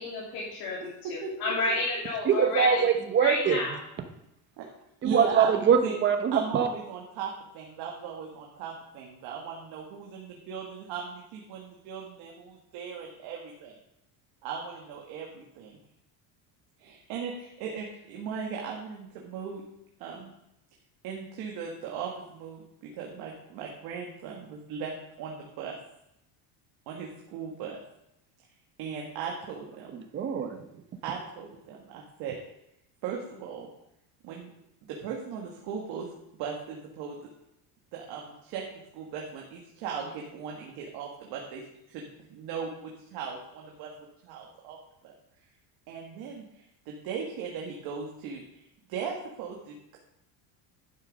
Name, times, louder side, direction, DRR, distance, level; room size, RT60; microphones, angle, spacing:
voice 1, 0.0-2.9 3.2-3.7, left 2 dB, 55° left, -5 dB, 2.9 m, -31 dB
voice 2, 1.0-1.8 4.6-4.7 5.0-5.5 5.8-5.9 6.3-13.7 14.4-15.8 16.8-19.6 20.0-20.3 21.0-25.7 26.9-27.8 28.8-29.9 31.0-32.4 33.0-33.7 34.2-34.5 34.9-36.1 36.3-37.3 37.9-38.6 38.9-41.6 41.9-43.9 44.2-44.8 45.0-45.1 45.9-48.6 48.9-50.0, right 6 dB, 60° right, -1 dB, 1.9 m, -38 dB
voice 3, 2.2-3.6 5.0-6.7 29.9-30.6, right 7 dB, 25° right, 7 dB, 1.0 m, -23 dB
11.5 x 6.7 x 5.4 m, 0.82 s
cardioid pair, 170°, 43 cm